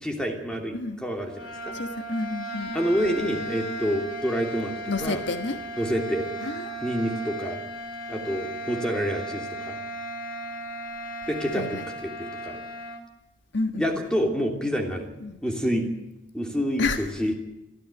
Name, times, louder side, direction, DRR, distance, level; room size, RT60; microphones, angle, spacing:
voice 1, 0.0-1.7 2.7-4.7 5.0-5.2 5.8-6.3 6.8-7.6 8.1-9.8 11.3-12.6 13.8-15.9 16.3-17.3, equal, 5° left, 2 dB, 3.0 m, -28 dB
sound 1, 1.2-13.1, right 1 dB, 80° left, 3.5 m, -36 dB
voice 2, 1.7-2.8 4.9-5.6 6.4-6.8 11.5-11.9 13.5-14.0 15.2-15.4 16.8-17.0, left 3 dB, 65° left, 7 dB, 1.5 m, -30 dB
24.5 x 14.0 x 9.1 m, 0.96 s
head